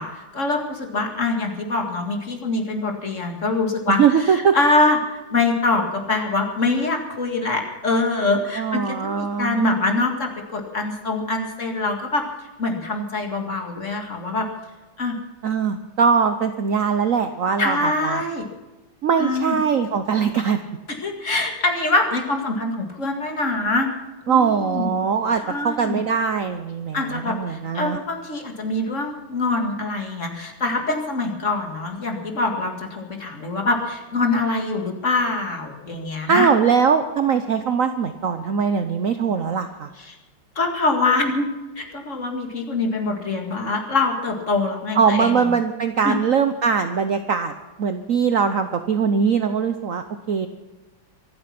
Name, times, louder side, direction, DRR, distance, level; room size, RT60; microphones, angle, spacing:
voice 1, 0.0-12.2 12.6-14.5 15.0-15.2 17.6-18.5 19.2-19.6 21.0-23.9 24.2-24.9 25.4-26.0 26.9-36.5 40.0-40.2 40.6-41.5 41.8-45.5 46.0-46.2, left 2 dB, 40° left, 3 dB, 2.2 m, -24 dB
voice 2, 3.9-4.6 8.6-9.6 15.4-18.2 19.0-20.6 24.3-28.0 36.3-39.9 44.9-47.5 47.8-50.5, right 6 dB, 60° right, 8 dB, 0.9 m, -21 dB
24.5 x 8.6 x 5.9 m, 1.1 s
omnidirectional pair, 2.2 m